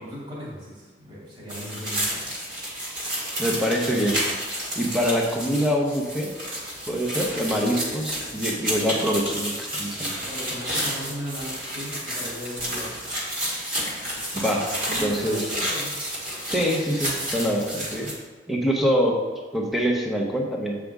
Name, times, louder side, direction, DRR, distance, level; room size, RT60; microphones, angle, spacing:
voice 1, 0.0-2.3 10.2-12.9 14.8-16.0, equal, 25° right, -7 dB, 2.2 m, -36 dB
sound 1, 1.5-18.1, equal, 50° right, 1.8 m, -31 dB
voice 2, 3.4-4.2 4.7-6.3 6.9-10.2 14.3-14.7 15.0-15.4 16.5-18.1 18.5-19.2 19.5-20.8, equal, ahead, -1 dB, 0.9 m, -24 dB
7.7 x 5.0 x 3.5 m, 1.4 s
head